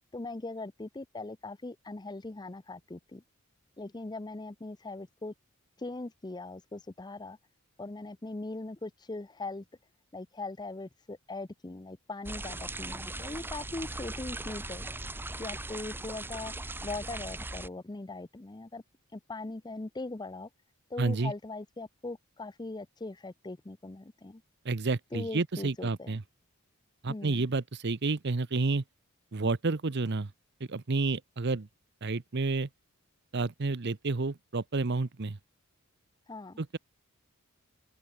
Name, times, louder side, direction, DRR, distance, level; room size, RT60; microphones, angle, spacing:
voice 1, 0.1-3.2 3.8-5.3 5.8-7.4 7.8-9.6 10.1-14.9 15.4-16.5 16.8-18.8 19.1-20.5 20.9-24.4 25.1-26.1 27.1-27.5 36.3-36.6, left 2 dB, 20° left, 0.5 m, -40 dB
sound 1, 12.2-17.7, right 2 dB, 10° right, 1.1 m, -39 dB
voice 2, 21.0-21.3 24.6-26.2 27.0-28.8 29.3-30.3 30.6-31.7 32.0-32.7 33.3-35.4 36.6-36.8, right 3 dB, 50° right, 0.8 m, -30 dB
open air
head